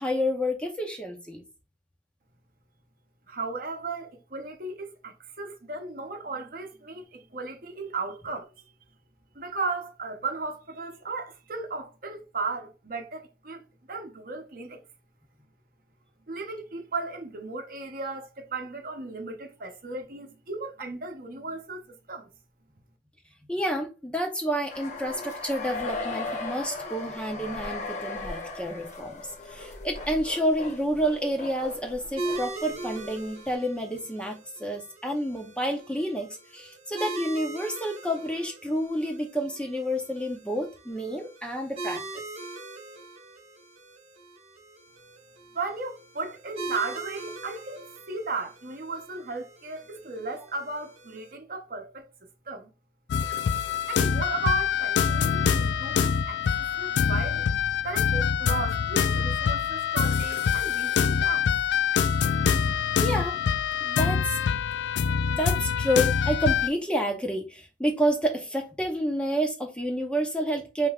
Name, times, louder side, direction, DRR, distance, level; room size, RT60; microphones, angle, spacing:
voice 1, 0.0-1.4 23.5-34.3 34.6-42.0 63.0-63.4 63.8-64.4 65.3-70.9, equal, 5° left, 0.7 m, -29 dB
voice 2, 3.3-8.5 9.3-14.8 16.3-22.3 45.5-52.7 53.9-57.5 57.8-61.5, right 3 dB, 50° right, 0.8 m, -35 dB
sound 1, 24.7-33.2, left 3 dB, 40° left, 0.8 m, -37 dB
sound 2, 32.2-51.3, right 2 dB, 35° right, 1.2 m, -41 dB
sound 3, 53.1-66.7, left 7 dB, 80° left, 0.4 m, -25 dB
5.3 x 3.3 x 2.4 m
head